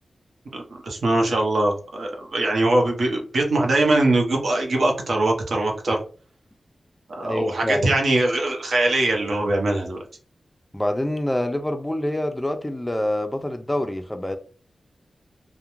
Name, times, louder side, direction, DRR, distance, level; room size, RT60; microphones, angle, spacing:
voice 1, 0.5-6.0 7.2-10.0, right 2 dB, 75° right, 0.7 m, -22 dB
voice 2, 7.2-7.9 10.7-14.4, left 1 dB, 10° left, 0.3 m, -26 dB
2.4 x 2.1 x 2.9 m
wide cardioid pair, 110°, 0 cm